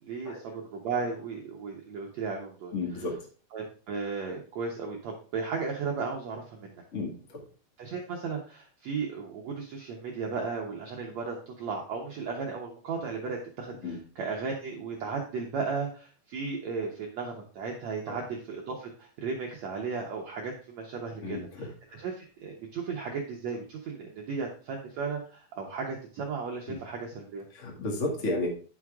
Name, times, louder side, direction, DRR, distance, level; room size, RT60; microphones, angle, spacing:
voice 1, 0.0-3.0 3.5-6.8 7.8-27.4, right 5 dB, 80° right, 0 dB, 1.5 m, -35 dB
voice 2, 2.7-3.2 6.9-7.4 13.8-14.0 18.1-18.2 21.2-21.7 22.0-22.1 26.7-26.8 27.5-28.5, left 2 dB, 30° left, -1 dB, 1.5 m, -33 dB
10.0 x 6.3 x 3.6 m, 0.39 s
omnidirectional pair, 4.7 m